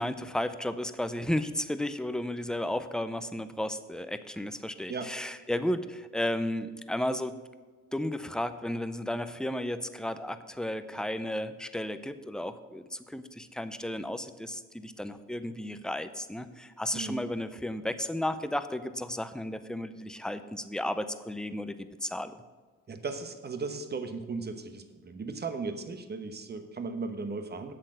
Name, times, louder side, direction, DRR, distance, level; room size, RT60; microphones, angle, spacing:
voice 1, 0.0-7.4 7.9-22.4, left 1 dB, ahead, 11 dB, 0.6 m, -33 dB
voice 2, 16.9-17.2 22.9-27.7, right 4 dB, 35° right, 8 dB, 1.1 m, -36 dB
8.0 x 6.4 x 7.9 m, 1.4 s
cardioid pair, 90°, 30 cm